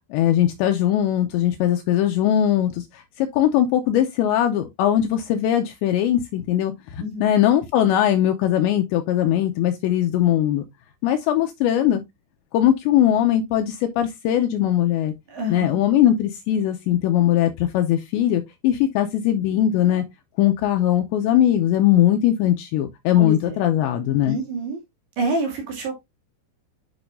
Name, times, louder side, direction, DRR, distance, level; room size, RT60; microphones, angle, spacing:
voice 1, 0.1-10.6 11.0-12.0 12.5-15.1 15.5-20.0 20.4-24.4, left 11 dB, 85° left, 2.7 m, -20 dB
voice 2, 7.0-7.4 15.3-15.8 23.2-23.6 24.2-24.8 25.2-26.0, right 1 dB, 60° right, 4.1 m, -27 dB
8.8 x 6.0 x 2.6 m
omnidirectional pair, 5.7 m